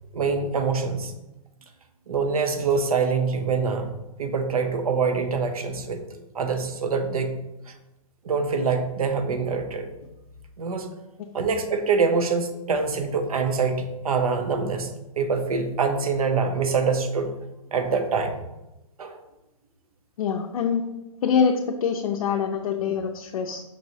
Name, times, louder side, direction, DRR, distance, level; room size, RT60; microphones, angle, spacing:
voice 1, 0.1-1.1 2.1-3.9 4.2-6.0 6.3-7.4 7.7-7.8 8.2-9.8 10.6-10.9 11.3-14.9 15.2-17.3 17.7-18.3 19.0-19.2, right 5 dB, 85° right, 6 dB, 0.8 m, -25 dB
voice 2, 20.2-20.9 21.2-23.6, left 6 dB, 70° left, 2 dB, 0.5 m, -24 dB
5.3 x 3.0 x 2.7 m, 0.94 s
hypercardioid pair, 150°, 18 cm